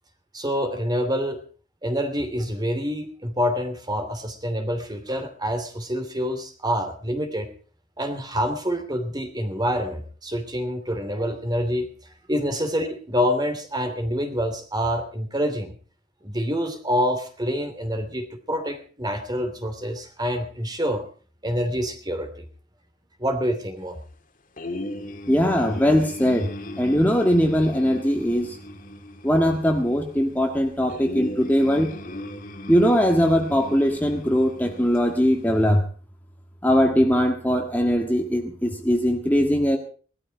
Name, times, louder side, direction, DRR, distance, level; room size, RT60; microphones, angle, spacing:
voice 1, 0.3-1.4 1.8-7.5 8.0-11.9 12.3-15.7 16.2-21.1 21.4-22.5 23.2-24.0, equal, 25° right, 8 dB, 2.8 m, -26 dB
sound 1, 24.6-35.8, left 1 dB, 45° left, 2.3 m, -38 dB
voice 2, 25.3-26.5 26.8-28.6 29.2-31.9 32.7-35.8 36.6-39.8, equal, 10° left, 2 dB, 1.7 m, -20 dB
18.5 x 13.5 x 4.4 m, 0.40 s
head